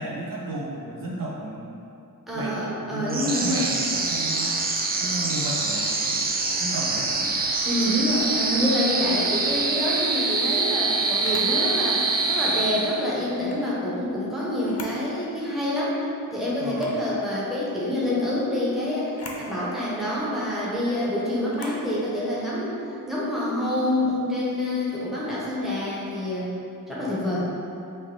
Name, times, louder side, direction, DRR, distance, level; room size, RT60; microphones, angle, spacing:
voice 1, 0.0-1.8 2.3-2.5 2.9-4.5 5.0-6.2 6.5-7.3 16.6-17.0 26.9-27.2, right 2 dB, 75° right, -6 dB, 1.0 m, -34 dB
voice 2, 2.3-3.7 7.7-16.0 16.3-22.8 23.1-26.6 26.9-27.5, left 1 dB, ahead, -8 dB, 0.9 m, -27 dB
sound 1, 3.1-13.3, right 3 dB, 30° right, 0.4 m, -25 dB
Camera, 11.2-11.6 13.3-13.6 14.6-15.0 15.5-15.6 16.7-17.0 19.1-19.4 21.5-21.8, left 3 dB, 45° left, 0.6 m, -40 dB
5.6 x 2.7 x 3.3 m, 2.8 s
wide cardioid pair, 125°, 34 cm